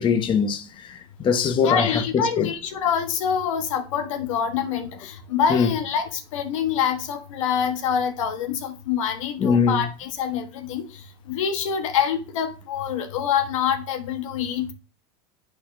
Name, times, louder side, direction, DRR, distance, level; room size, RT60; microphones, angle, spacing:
voice 1, 0.0-2.5 5.5-5.7 9.4-9.8, left 6 dB, 30° left, 0.8 m, -22 dB
voice 2, 1.6-10.8 11.3-14.7, left 8 dB, 85° left, 1.2 m, -25 dB
10.5 x 4.2 x 2.6 m
supercardioid pair, 115°, 16 cm